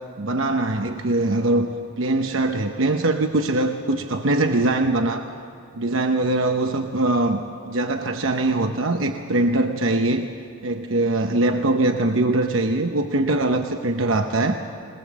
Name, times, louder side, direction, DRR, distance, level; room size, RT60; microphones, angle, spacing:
voice 1, 0.2-1.7 2.0-5.2 5.7-10.3 10.6-14.6, right 2 dB, 80° right, 5 dB, 0.9 m, -22 dB
20.5 x 20.5 x 7.5 m, 2.6 s
head